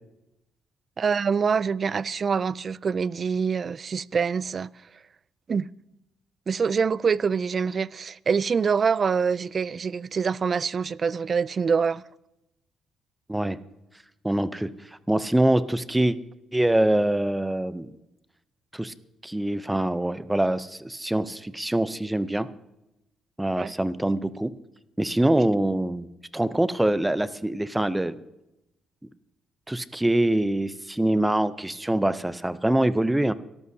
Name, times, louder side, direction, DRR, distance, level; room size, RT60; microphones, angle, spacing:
voice 1, 1.0-4.7 5.5-5.7 6.5-12.0 23.6-23.7, right 6 dB, 45° right, 0.4 m, -25 dB
voice 2, 14.2-14.7 15.1-16.2 16.5-17.9 18.7-18.9 19.2-22.5 23.4-24.5 25.0-26.1 26.3-28.2 29.7-33.3, right 1 dB, 10° right, 0.7 m, -24 dB
23.5 x 13.5 x 2.8 m
cardioid pair, 90°, 0 cm